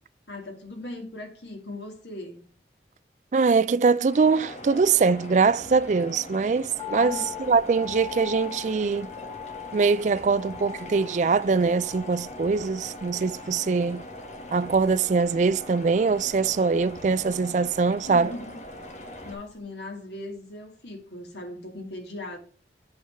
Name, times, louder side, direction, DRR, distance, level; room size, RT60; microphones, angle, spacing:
voice 1, 0.3-2.4 6.8-7.3 18.1-18.6 19.2-22.4, left 2 dB, 80° left, 2.3 m, -39 dB
voice 2, 3.3-7.2 7.5-9.1 9.7-14.0 14.5-18.3, right 4 dB, 40° right, 0.3 m, -23 dB
sound 1, 4.1-19.3, equal, 40° left, 1.4 m, -41 dB
sound 2, 6.8-19.1 19.3-19.4, left 13 dB, 20° left, 1.8 m, -43 dB
7.8 x 4.6 x 5.6 m
head